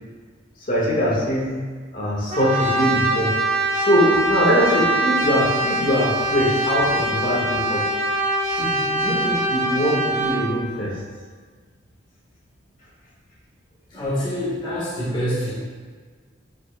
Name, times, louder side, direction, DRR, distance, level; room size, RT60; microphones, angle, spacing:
voice 1, 0.7-1.5 1.9-7.8 8.4-10.9, equal, 45° left, -5 dB, 1.9 m, -22 dB
Brass instrument, 2.3-10.5, right 2 dB, 35° right, 0.8 m, -23 dB
voice 2, 13.9-15.6, equal, 25° left, -9 dB, 1.5 m, -26 dB
9.3 x 6.1 x 2.3 m, 1.5 s
head